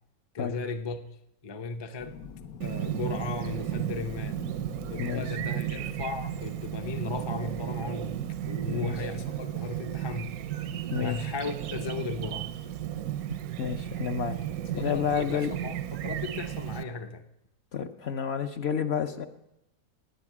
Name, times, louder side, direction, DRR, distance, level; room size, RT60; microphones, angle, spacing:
voice 1, 0.3-1.0 1.4-2.1 2.6-4.4 4.9-8.2 8.5-10.4 11.0-12.5 14.7-17.2, left 4 dB, 30° left, 7 dB, 0.5 m, -36 dB
sound 1, 2.0-10.2 11.6-11.7, left 6 dB, 90° left, 1.4 m, -47 dB
Chirp tweet, 2.6-16.8, right 11 dB, 90° right, 1.2 m, -34 dB
voice 2, 13.6-14.4 14.7-15.5 17.7-19.3, left 7 dB, 55° left, 7 dB, 0.8 m, -30 dB
20.0 x 8.8 x 6.0 m, 0.87 s
omnidirectional pair, 1.5 m